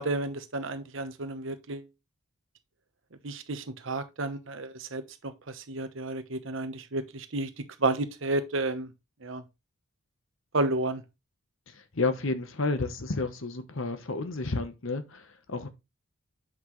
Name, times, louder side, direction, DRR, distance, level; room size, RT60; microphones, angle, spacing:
voice 1, 0.0-1.8 3.2-7.5 7.8-8.9 9.2-9.4 10.5-11.0, right 2 dB, 60° right, 1.0 m, -31 dB
voice 2, 11.9-15.7, left 3 dB, 65° left, 1.0 m, -31 dB
7.8 x 6.0 x 3.1 m
head